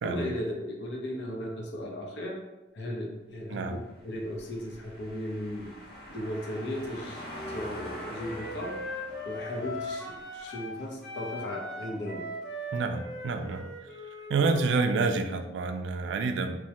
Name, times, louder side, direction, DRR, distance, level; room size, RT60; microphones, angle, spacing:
voice 1, 0.0-2.3 2.7-3.8 4.0-5.7 6.1-8.7 9.2-12.2, left 1 dB, 75° left, 0 dB, 0.6 m, -36 dB
sound 1, 4.0-10.8, left 1 dB, 60° left, 1.0 m, -45 dB
Wind instrument woodwind instrument, 7.2-10.8 11.0-14.9, left 1 dB, 5° left, 0.6 m, -39 dB
voice 2, 12.7-13.7 14.3-16.6, right 4 dB, 85° right, 7 dB, 0.3 m, -28 dB
3.1 x 2.1 x 2.8 m, 1.0 s
head